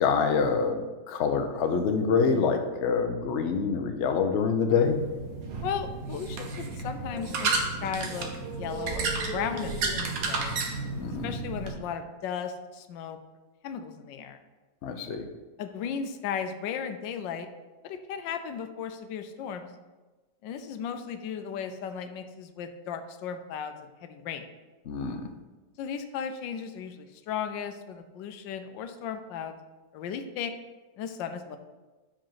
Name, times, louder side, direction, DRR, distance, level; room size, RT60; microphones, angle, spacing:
voice 1, 0.0-5.0 11.0-11.4 14.8-15.2 24.9-25.2, left 5 dB, 60° left, 6 dB, 0.7 m, -26 dB
sound 1, 4.8-11.7, right 3 dB, 55° right, 1.2 m, -32 dB
voice 2, 5.6-8.3 8.6-10.5 11.2-13.2 13.6-14.4 15.6-17.5 17.8-19.7 20.4-23.7 24.0-24.4 25.8-29.5 29.9-30.5 31.0-31.6, left 7 dB, 90° left, 8 dB, 1.3 m, -35 dB
5.2 x 5.1 x 5.6 m, 1.2 s
omnidirectional pair, 2.0 m